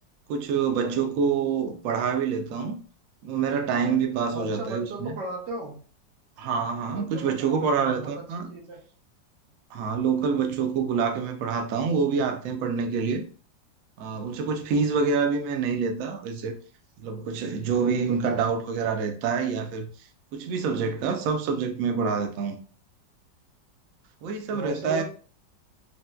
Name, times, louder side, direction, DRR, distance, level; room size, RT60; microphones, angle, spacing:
voice 1, 0.3-2.7 3.2-5.1 6.4-8.5 9.7-13.3 14.0-16.5 17.0-19.9 20.3-22.6 24.2-25.0, right 5 dB, 90° right, 0.7 m, -26 dB
voice 2, 4.3-5.8 6.9-8.8 24.5-25.0, right 1 dB, 70° right, 1.4 m, -36 dB
4.0 x 2.1 x 2.2 m
omnidirectional pair, 2.0 m